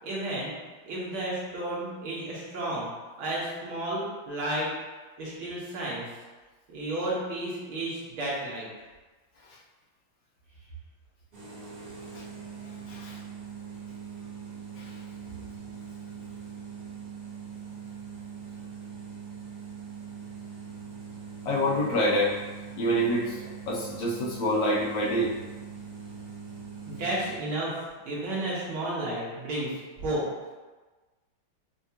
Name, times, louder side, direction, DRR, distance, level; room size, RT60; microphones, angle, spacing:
voice 1, 0.0-0.5 0.8-2.9 3.2-4.7 5.2-6.1 6.7-8.7 26.9-30.2, right 1 dB, 85° right, -6 dB, 1.9 m, -32 dB
sound 1, 11.3-27.4, right 6 dB, 45° right, 0.7 m, -42 dB
voice 2, 12.9-13.2 14.8-14.9 21.5-22.4 22.8-25.3, equal, 75° left, -3 dB, 1.2 m, -27 dB
5.9 x 2.3 x 2.8 m, 1.3 s
omnidirectional pair, 2.2 m